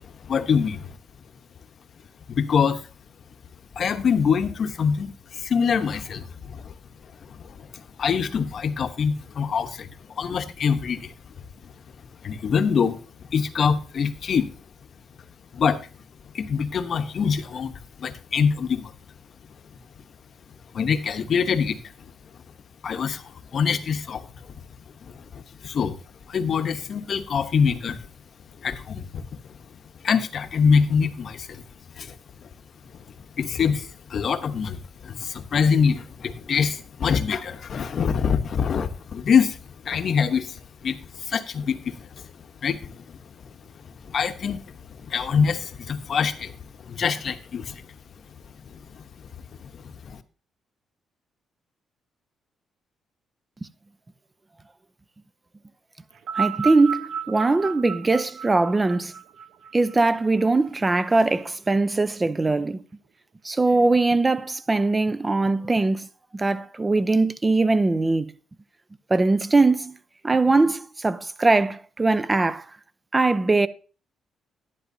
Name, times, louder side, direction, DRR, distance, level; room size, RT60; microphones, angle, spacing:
voice 1, 0.3-0.9 2.3-2.8 3.8-5.1 5.4-6.6 8.0-9.9 10.2-11.1 12.2-13.0 13.3-14.5 15.5-15.8 16.3-17.7 18.0-18.9 20.7-21.8 22.8-23.2 23.5-24.2 25.3-26.0 26.3-28.0 28.6-29.2 30.0-31.6 32.0-32.1 33.4-34.8 35.0-39.6 39.8-40.5 40.8-41.0 41.3-41.9 42.6-42.9 44.1-44.6 45.1-46.5 46.9-47.8 50.1-50.2, left 6 dB, 55° left, 1.0 m, -24 dB
sound 1, 56.1-60.7 61.6-61.7, right 7 dB, 75° right, 1.0 m, -32 dB
voice 2, 56.4-59.1 59.7-62.8 63.4-66.1 66.3-68.3 69.1-70.0 70.2-72.7 73.1-73.7, right 3 dB, 20° right, 0.6 m, -21 dB
11.0 x 9.8 x 2.7 m
cardioid pair, 90°, 0 cm